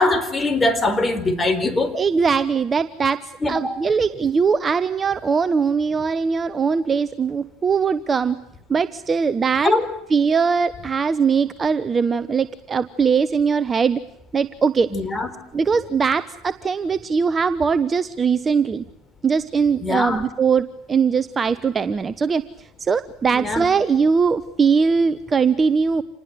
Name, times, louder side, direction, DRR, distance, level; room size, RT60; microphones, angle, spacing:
voice 1, 0.0-1.9 3.4-3.8 9.6-9.9 14.9-15.3 19.8-20.3 23.3-23.7, left 2 dB, 20° left, 11 dB, 4.3 m, -21 dB
voice 2, 1.9-8.4 8.7-9.7 10.1-14.0 14.3-14.9 15.5-18.8 19.2-26.0, right 5 dB, 30° right, 13 dB, 1.0 m, -21 dB
28.0 x 20.0 x 8.2 m, 0.78 s
hypercardioid pair, 85°, 0 cm